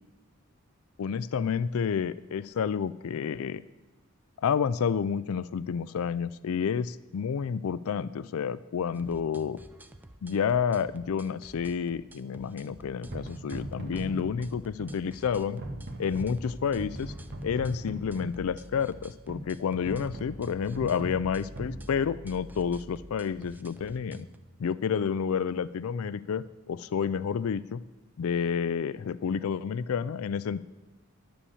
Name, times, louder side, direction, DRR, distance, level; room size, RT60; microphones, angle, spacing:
voice 1, 1.0-3.6 4.4-9.6 10.2-15.6 16.0-17.1 17.4-24.3 24.6-27.8 28.2-30.6, left 7 dB, 70° left, 16 dB, 0.4 m, -30 dB
sound 1, 8.9-24.4, right 1 dB, 10° right, 0.5 m, -50 dB
sound 2, 13.1-23.2, right 1 dB, 55° right, 1.6 m, -41 dB
11.0 x 10.0 x 7.0 m, 1.1 s
head